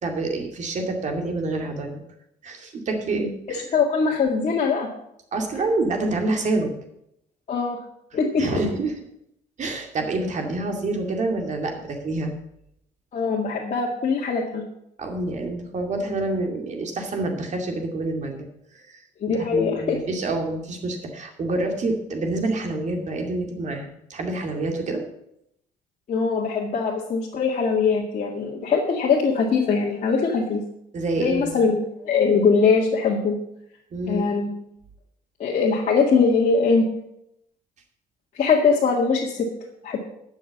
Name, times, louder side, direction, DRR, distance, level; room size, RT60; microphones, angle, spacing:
voice 1, 0.0-2.0 2.4-3.6 5.3-6.7 8.4-8.9 9.6-12.3 15.0-18.5 18.7-25.0 30.9-31.5 33.9-34.3, right 2 dB, 45° right, 3 dB, 2.4 m, -27 dB
voice 2, 3.5-4.9 7.5-7.8 8.1-8.6 13.1-14.6 19.2-20.0 26.1-30.6 31.2-33.4 34.1-34.5 35.4-36.8 38.3-39.5 39.8-40.0, left 5 dB, 45° left, -3 dB, 2.0 m, -21 dB
12.0 x 6.4 x 7.2 m, 0.77 s
cardioid pair, 110°, 17 cm